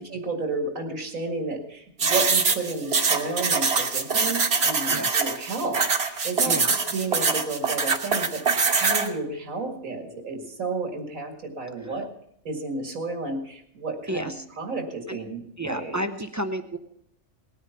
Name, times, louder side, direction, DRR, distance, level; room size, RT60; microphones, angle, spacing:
voice 1, 0.0-8.4 8.7-12.1 12.4-16.0, right 3 dB, 85° right, 4 dB, 2.3 m, -32 dB
sound 1, 2.0-9.1, right 5 dB, 50° right, 1.4 m, -23 dB
voice 2, 4.9-5.3 6.4-6.7 11.8-12.0 14.1-14.4 15.1-15.2 15.6-16.8, right 1 dB, 20° right, 8 dB, 0.5 m, -31 dB
18.5 x 9.6 x 5.8 m, 0.72 s
omnidirectional pair, 1.4 m